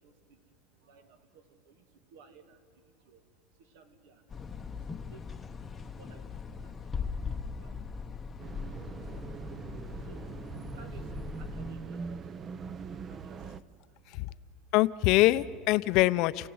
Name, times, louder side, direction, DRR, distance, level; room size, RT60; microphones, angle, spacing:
voice 1, 0.0-14.7, right 4 dB, 80° right, 8 dB, 2.4 m, -59 dB
sound 1, 4.3-11.8, left 5 dB, 15° left, 0.8 m, -40 dB
sound 2, 8.4-13.6, right 6 dB, 25° right, 0.6 m, -42 dB
voice 2, 14.7-16.5, left 18 dB, 50° left, 16 dB, 0.6 m, -24 dB
28.5 x 16.5 x 9.5 m, 2.2 s
cardioid pair, 165°, 0 cm